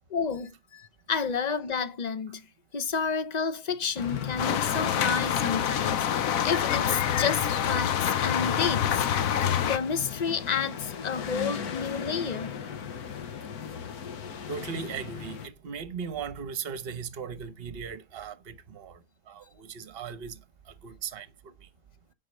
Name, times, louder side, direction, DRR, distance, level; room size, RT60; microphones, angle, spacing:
voice 1, 0.1-2.5 2.7-9.3 9.6-12.6, left 5 dB, 40° left, 0.6 m, -30 dB
sound 1, 4.0-15.5, left 8 dB, 85° left, 1.4 m, -38 dB
sound 2, 4.4-9.8, left 9 dB, 70° left, 1.1 m, -26 dB
voice 2, 14.5-19.0 19.3-20.4 20.8-21.3, right 6 dB, 45° right, 1.1 m, -37 dB
9.3 x 4.4 x 6.6 m
omnidirectional pair, 1.6 m